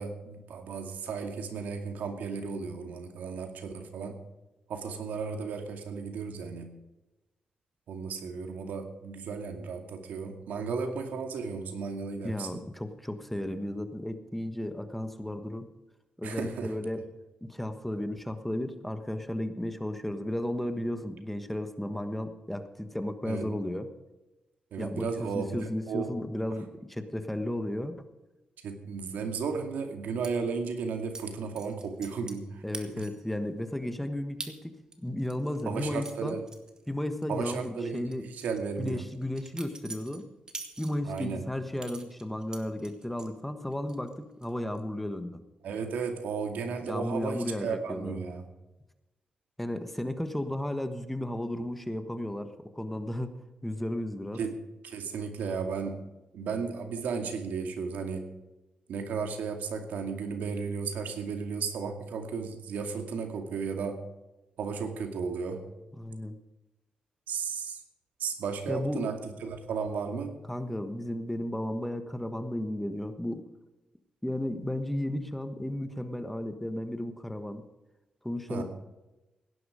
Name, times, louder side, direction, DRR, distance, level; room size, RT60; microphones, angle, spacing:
voice 1, 0.0-4.2 4.7-6.8 7.9-12.6 16.2-16.7 23.3-23.5 24.7-26.1 28.6-33.0 35.7-36.4 37.3-39.1 41.0-41.4 45.6-48.4 54.3-54.6 54.8-56.0 56.3-58.2 58.9-64.0 64.6-65.6 67.3-67.8 68.2-70.4 78.5-78.6, right 5 dB, 90° right, 5 dB, 2.3 m, -34 dB
voice 2, 12.2-15.7 16.2-17.1 17.4-23.9 24.8-28.0 32.6-36.4 36.9-38.3 38.8-40.3 40.8-45.4 46.9-48.2 49.6-54.4 66.0-66.4 68.7-69.1 70.5-73.5 74.2-77.7 78.2-78.6, left 1 dB, 5° left, 9 dB, 1.3 m, -34 dB
sound 1, 30.2-30.3 31.1-31.3 31.6-32.5 32.7-33.3 33.7-33.8 34.4-34.5 34.9-37.3 37.5-37.7 38.1-41.3 41.8-43.3 43.7-44.1 44.4-44.8, right 3 dB, 25° right, 2.0 m, -44 dB
17.0 x 11.0 x 5.0 m, 1.0 s
cardioid pair, 110°, 3 cm